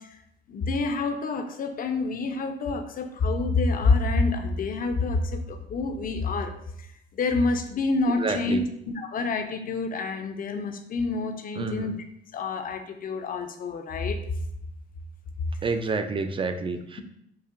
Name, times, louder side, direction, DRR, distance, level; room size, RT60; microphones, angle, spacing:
voice 1, 0.5-6.5 7.1-11.9 12.3-14.4, left 3 dB, 45° left, 6 dB, 0.5 m, -27 dB
voice 2, 8.2-8.6 11.6-11.9 15.6-17.0, right 4 dB, 25° right, 7 dB, 0.4 m, -28 dB
5.4 x 2.1 x 2.5 m, 0.77 s
cardioid pair, 90°, 20 cm